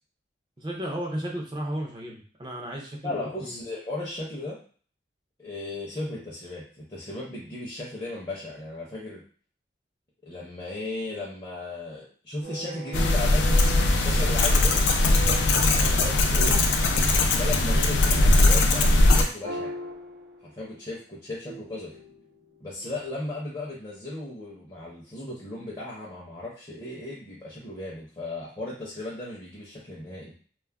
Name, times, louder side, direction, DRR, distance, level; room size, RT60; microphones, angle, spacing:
voice 1, 0.6-3.6 15.8-16.0, right 1 dB, 25° right, -1 dB, 0.4 m, -34 dB
voice 2, 3.0-4.6 5.4-9.2 10.2-14.8 16.2-16.6 17.3-19.7 20.4-21.9 22.6-30.3, left 2 dB, 25° left, -6 dB, 0.6 m, -36 dB
sound 1, 12.4-16.6 19.4-20.9 21.5-23.2, right 2 dB, 85° right, 0.6 m, -41 dB
sound 2, 12.9-19.2, left 2 dB, 80° left, 0.4 m, -20 dB
2.3 x 2.0 x 3.3 m, 0.43 s
head